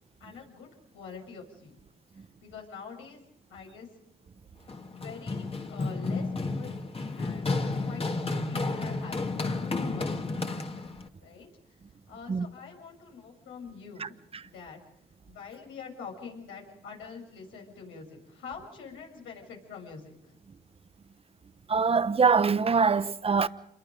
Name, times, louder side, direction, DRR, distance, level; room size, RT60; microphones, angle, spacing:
voice 1, 0.2-1.8 2.1-3.2 3.5-3.9 4.9-6.8 7.1-10.6 11.2-11.5 12.1-14.1 14.4-14.8 15.2-20.4, left 5 dB, 85° left, 6.9 m, -45 dB
Run, 4.7-11.1, left 3 dB, 30° left, 1.9 m, -32 dB
voice 2, 21.7-23.5, right 5 dB, 30° right, 1.0 m, -23 dB
27.5 x 22.0 x 5.3 m
cardioid pair, 90°, 20 cm